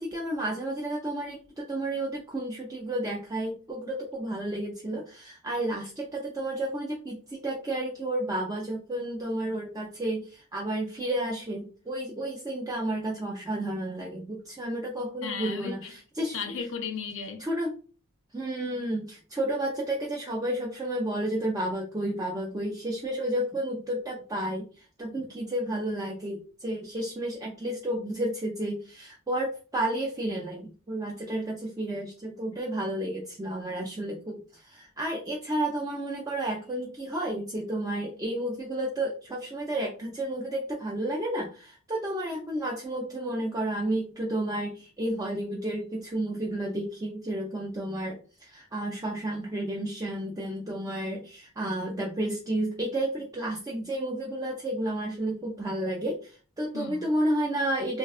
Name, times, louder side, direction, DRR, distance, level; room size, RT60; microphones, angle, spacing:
voice 1, 0.0-16.4 17.4-17.7 18.3-58.0, right 1 dB, 15° right, 0.4 m, -31 dB
voice 2, 15.2-15.9 16.3-17.4 25.2-25.3 56.7-57.1, left 5 dB, 60° left, 0.4 m, -35 dB
3.4 x 2.2 x 2.3 m
head